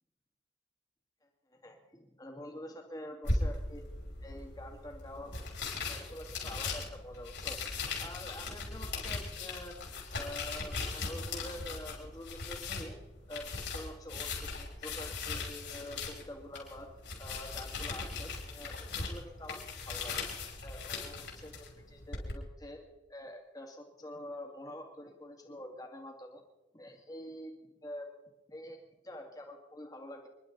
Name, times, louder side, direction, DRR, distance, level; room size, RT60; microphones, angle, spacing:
voice 1, 1.5-3.9 4.2-9.8 10.1-13.0 13.3-16.9 17.2-20.3 20.6-22.8 23.1-26.4 26.7-27.5 27.8-28.1 28.5-30.3, left 1 dB, 20° left, 2 dB, 2.2 m, -46 dB
sound 1, 3.2-22.3, left 3 dB, 75° left, 5.4 m, -39 dB
28.5 x 11.5 x 4.0 m, 1.1 s
head